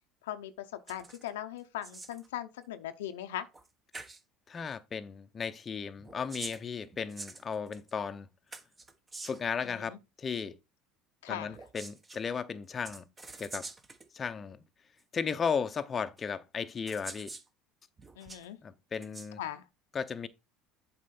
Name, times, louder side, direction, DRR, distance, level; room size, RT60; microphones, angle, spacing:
voice 1, 0.2-3.5 9.6-10.0 11.2-11.6 18.2-18.6 19.4-19.6, left 12 dB, 90° left, 0.7 m, -39 dB
sound 1, 0.9-1.3 1.6-2.3 3.5-3.7 3.9-4.2 6.0-7.9 8.5-9.5 11.5-12.2 12.8-14.1 15.0-15.1 16.2-16.3 16.9-17.5 18.0-18.5 18.9-19.3, right 3 dB, 20° right, 1.2 m, -46 dB
voice 2, 4.5-8.3 9.2-10.6 11.3-13.1 13.4-13.7 14.1-14.6 15.1-17.3 18.6-19.4 19.9-20.3, left 6 dB, 30° left, 0.7 m, -35 dB
7.6 x 4.3 x 4.2 m
supercardioid pair, 85°, 0 cm